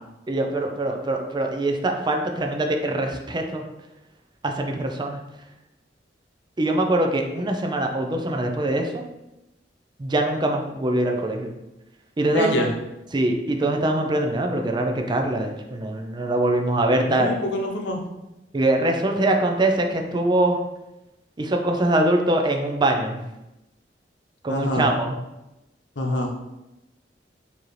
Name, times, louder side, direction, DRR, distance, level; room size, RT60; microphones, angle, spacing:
voice 1, 0.3-3.6 4.4-5.2 6.6-9.1 10.0-11.5 12.2-12.6 13.1-17.3 18.5-20.6 21.4-23.2 24.4-25.1, right 1 dB, 25° right, 4 dB, 0.4 m, -23 dB
voice 2, 12.3-12.7 17.1-18.0 24.5-24.9 26.0-26.3, equal, 90° left, 2 dB, 0.7 m, -25 dB
4.7 x 2.8 x 3.2 m, 0.94 s
head